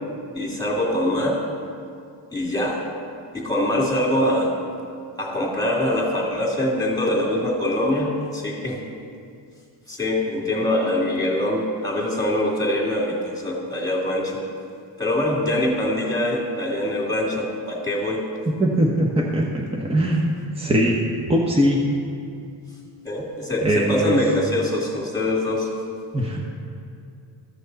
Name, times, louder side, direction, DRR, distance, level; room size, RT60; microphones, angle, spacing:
voice 1, 0.3-1.4 2.3-2.8 3.3-4.5 5.2-8.8 9.9-14.4 15.0-18.2 23.0-25.7, left 1 dB, 10° left, -3 dB, 2.5 m, -23 dB
voice 2, 18.5-20.3 20.6-21.0 21.3-21.8 23.6-24.2 26.1-26.4, equal, 10° right, -2 dB, 1.0 m, -21 dB
14.0 x 6.3 x 4.0 m, 2.4 s
cardioid pair, 100°, 48 cm